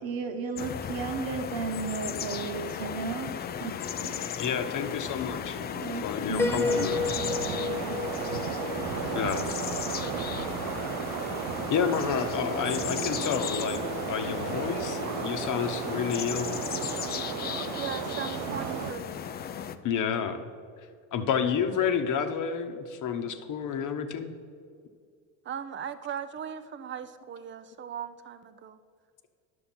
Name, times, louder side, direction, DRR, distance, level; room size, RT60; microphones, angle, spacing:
voice 1, 0.0-4.5 5.7-6.9 7.2-8.7, right 4 dB, 55° right, 6 dB, 1.2 m, -35 dB
sound 1, 0.6-19.8, left 8 dB, 25° left, 0.4 m, -35 dB
voice 2, 4.4-5.6 6.0-7.0 9.1-9.6 11.7-16.6 19.8-20.4 21.1-24.3, left 7 dB, 45° left, 7 dB, 0.9 m, -30 dB
Piano, 6.4-10.1, left 5 dB, 5° left, 0.8 m, -32 dB
sound 2, 6.6-18.9, right 12 dB, 80° right, 0.5 m, -35 dB
voice 3, 17.8-19.2 25.4-28.8, right 8 dB, 30° right, 12 dB, 0.5 m, -38 dB
10.5 x 6.5 x 4.3 m, 2.2 s
supercardioid pair, 90°, 42 cm